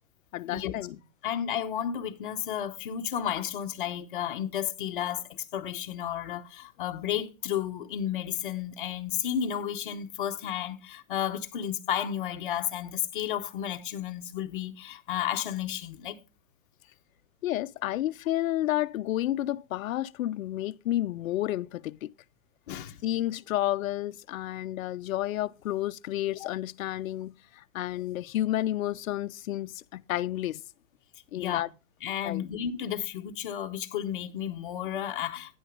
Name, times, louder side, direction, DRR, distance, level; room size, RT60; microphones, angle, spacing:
voice 1, 0.3-1.0 17.4-22.1 23.0-30.6 31.3-31.7 32.2-32.5, left 14 dB, 75° left, 0.5 m, -31 dB
voice 2, 1.2-16.2 22.7-23.0 26.4-26.5 31.4-31.7 32.0-35.6, left 10 dB, 40° left, 0.9 m, -32 dB
9.6 x 6.2 x 5.1 m
hypercardioid pair, 170°, 41 cm